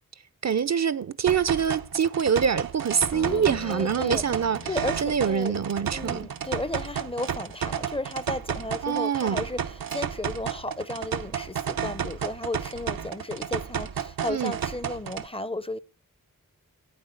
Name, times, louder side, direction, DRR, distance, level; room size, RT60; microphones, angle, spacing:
voice 1, 0.4-4.7 5.0-6.3 8.8-9.4 14.3-14.5, right 7 dB, 50° right, 0.6 m, -25 dB
sound 1, 1.3-15.3, right 8 dB, 85° right, 0.8 m, -32 dB
Acoustic guitar, 3.1-8.0, left 4 dB, 55° left, 1.0 m, -44 dB
voice 2, 3.7-4.2 4.7-5.5 5.9-15.8, left 1 dB, 15° left, 0.6 m, -34 dB
9.7 x 8.7 x 7.8 m
cardioid pair, 50°, 34 cm